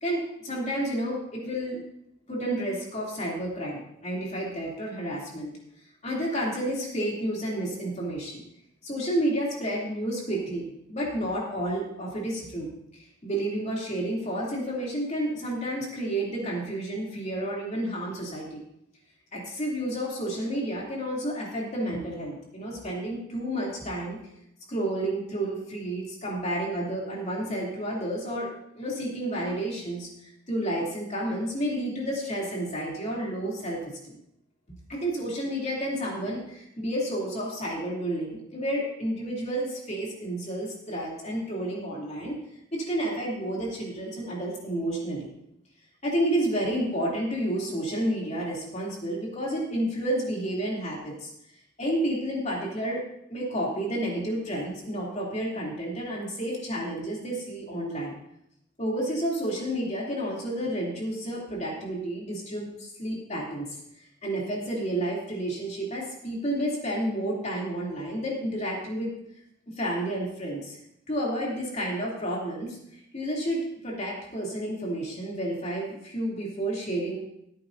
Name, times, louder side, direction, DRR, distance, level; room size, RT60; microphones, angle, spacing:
voice 1, 0.0-1.8 2.3-5.5 6.0-8.4 8.8-12.7 12.9-18.6 19.3-24.2 24.7-28.5 28.7-30.1 30.5-34.2 34.9-42.3 42.7-45.3 46.0-51.3 51.8-53.0 53.3-58.1 58.8-63.6 64.2-69.1 69.8-70.8 71.1-77.1, right 1 dB, 35° left, -3 dB, 2.9 m, -30 dB
16.0 x 9.3 x 2.7 m, 0.76 s
head